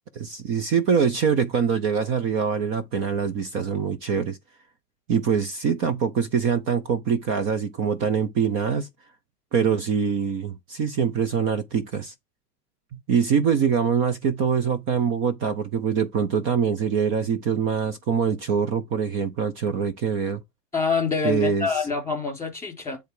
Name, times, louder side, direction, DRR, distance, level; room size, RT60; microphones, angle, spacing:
voice 1, 0.1-4.4 5.1-8.9 9.5-12.1 12.9-20.4 21.2-21.7, right 6 dB, 25° right, 0.6 m, -24 dB
voice 2, 20.7-23.0, left 5 dB, 5° left, 3.8 m, -26 dB
10.0 x 3.4 x 4.9 m
hypercardioid pair, 140°, 48 cm